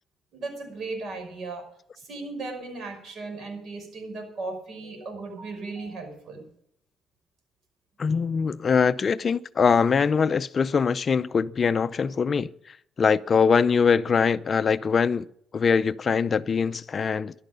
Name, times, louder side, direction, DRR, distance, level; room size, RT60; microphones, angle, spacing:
voice 1, 0.3-1.6 1.9-6.5, right 3 dB, 60° right, 5.6 m, -36 dB
voice 2, 8.0-12.5 13.0-15.3 15.5-17.3, left 6 dB, 45° left, 0.4 m, -22 dB
13.0 x 11.5 x 5.4 m
cardioid pair, 90°, 0 cm